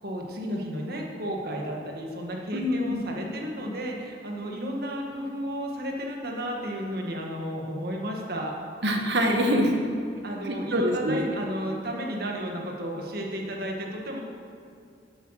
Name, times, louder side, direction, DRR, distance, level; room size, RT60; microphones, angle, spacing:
voice 1, 0.0-8.5 10.2-14.2, equal, 60° right, 0 dB, 1.8 m, -33 dB
voice 2, 2.5-3.0 8.8-9.9 10.4-11.2, equal, 75° right, 3 dB, 1.4 m, -25 dB
11.5 x 8.1 x 6.5 m, 2.3 s
head